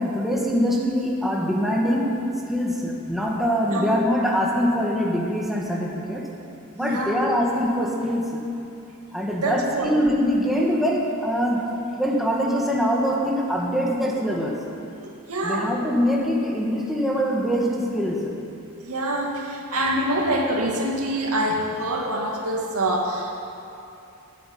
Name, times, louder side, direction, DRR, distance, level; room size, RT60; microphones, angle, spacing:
voice 1, 0.0-6.3 6.7-8.4 9.1-14.7 15.4-18.4, equal, ahead, -3 dB, 1.6 m, -23 dB
voice 2, 6.8-7.2 9.4-9.9 15.3-15.7 18.8-23.3, right 1 dB, 75° right, 0 dB, 2.4 m, -25 dB
14.0 x 9.8 x 9.3 m, 2.7 s
head